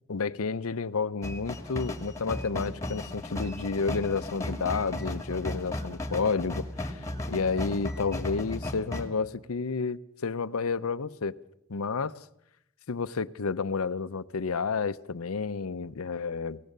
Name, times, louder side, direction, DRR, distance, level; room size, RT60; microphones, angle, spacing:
voice 1, 0.1-11.4 11.7-12.3 12.9-16.6, left 4 dB, 85° left, 15 dB, 0.7 m, -31 dB
sound 1, 1.2-9.1, left 1 dB, 15° left, 2.0 m, -35 dB
23.0 x 18.0 x 6.7 m, 0.77 s
head